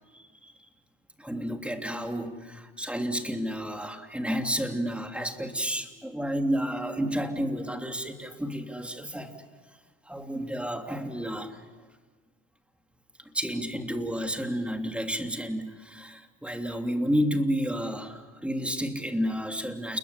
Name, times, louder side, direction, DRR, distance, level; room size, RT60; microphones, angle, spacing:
voice 1, 0.1-0.5 1.2-9.3 10.0-11.6 13.3-20.0, equal, 5° right, 5 dB, 3.1 m, -31 dB
29.5 x 22.0 x 8.4 m, 1.3 s
hypercardioid pair, 75°, 38 cm